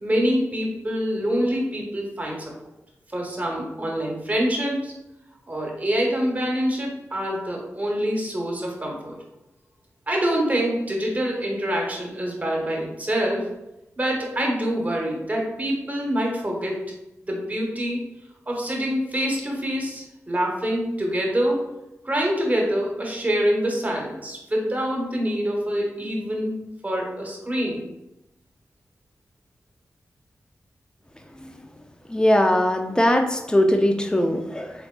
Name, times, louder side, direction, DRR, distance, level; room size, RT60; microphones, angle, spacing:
voice 1, 0.0-2.5 3.1-4.9 5.5-9.2 10.1-13.5 14.0-16.8 17.2-18.0 18.5-21.6 22.0-27.8, equal, 30° right, -1 dB, 1.2 m, -25 dB
voice 2, 32.1-34.9, left 1 dB, 15° left, 5 dB, 0.5 m, -20 dB
3.7 x 3.5 x 2.3 m, 0.92 s
cardioid pair, 50°, 6 cm